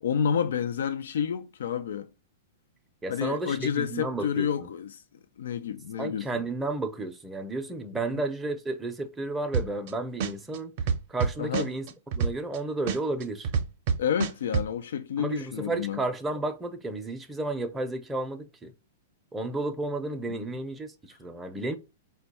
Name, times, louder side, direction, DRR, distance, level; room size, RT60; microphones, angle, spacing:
voice 1, 0.0-2.1 3.1-5.0 5.4-6.4 8.1-8.2 11.4-11.7 14.0-16.0 20.3-20.5, left 8 dB, 80° left, 0.4 m, -29 dB
voice 2, 3.0-4.7 6.0-10.7 11.1-11.9 12.1-13.5 15.2-18.7 19.3-21.8, right 2 dB, 10° right, 0.6 m, -32 dB
sound 1, 9.5-9.9 10.2-12.6 12.9-14.7, right 6 dB, 50° right, 0.6 m, -27 dB
4.4 x 2.2 x 4.0 m
hypercardioid pair, 140°, 0 cm